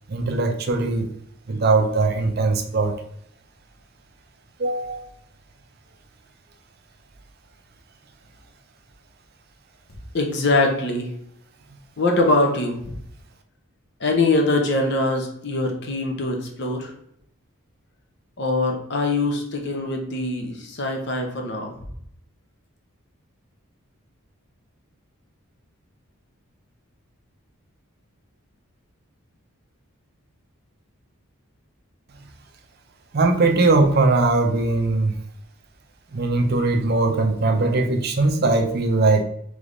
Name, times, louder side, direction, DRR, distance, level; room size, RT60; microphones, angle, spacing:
voice 1, 0.1-1.1 1.5-2.9 4.6-5.0 33.1-35.2 36.1-39.2, right 3 dB, 45° right, 5 dB, 0.5 m, -20 dB
voice 2, 10.1-11.1 12.0-13.0 14.0-16.9 18.4-21.8, left 2 dB, 50° left, 3 dB, 0.8 m, -23 dB
3.5 x 3.4 x 3.8 m, 0.71 s
head